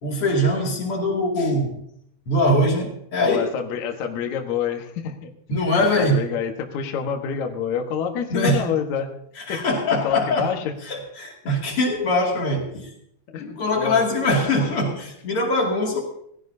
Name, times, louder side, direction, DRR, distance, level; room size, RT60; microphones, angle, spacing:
voice 1, 0.0-1.7 2.3-3.5 5.5-6.3 8.3-8.7 9.5-10.6 10.8-12.9 13.4-16.0, left 1 dB, 40° left, -1 dB, 2.6 m, -22 dB
voice 2, 3.2-5.3 5.8-9.1 9.5-10.7 13.3-14.0, left 7 dB, 65° left, 3 dB, 1.8 m, -27 dB
19.5 x 15.5 x 2.8 m, 0.70 s
omnidirectional pair, 5.3 m